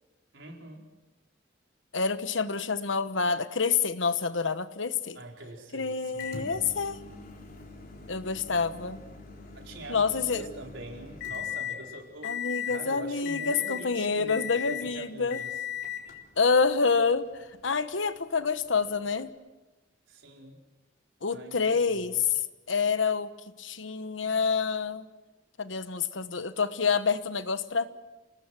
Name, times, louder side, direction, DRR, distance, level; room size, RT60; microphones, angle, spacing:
voice 1, 0.3-0.9 5.1-6.5 9.5-15.6 20.1-20.6 21.3-22.3, right 1 dB, 85° right, 1 dB, 4.5 m, -44 dB
voice 2, 1.9-5.2 5.7-7.0 8.1-9.0 9.9-10.5 12.2-15.4 16.4-19.3 21.2-22.1 22.7-23.3 23.6-25.1 25.6-27.9, left 5 dB, 80° left, 12 dB, 1.2 m, -27 dB
Microwave oven, 6.2-11.8 12.2-12.8 13.2-13.9 14.3-14.9 15.3-16.1 17.1-17.2 19.2-19.3, left 9 dB, 50° left, 3.7 m, -38 dB
29.0 x 19.0 x 6.2 m, 1.1 s
head